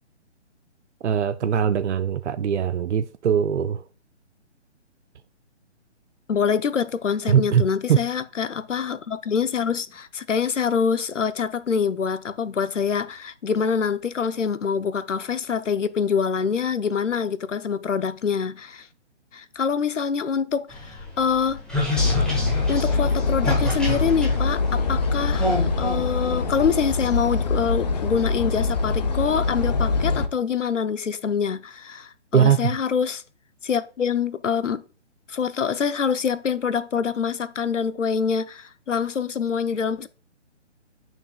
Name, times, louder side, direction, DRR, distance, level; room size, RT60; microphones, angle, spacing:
voice 1, 1.0-3.8 7.3-7.6 7.9-8.0 32.3-32.8, right 8 dB, 70° right, 0.5 m, -21 dB
voice 2, 6.3-18.9 19.3-21.6 22.7-33.2 33.6-34.8 35.3-40.1, left 6 dB, 85° left, 0.7 m, -25 dB
sound 1, 20.7-27.1, left 1 dB, ahead, 1.1 m, -29 dB
sound 2, 21.9-30.3, left 4 dB, 35° left, 0.6 m, -24 dB
8.7 x 6.0 x 2.3 m
figure-of-eight pair, 140°, 36 cm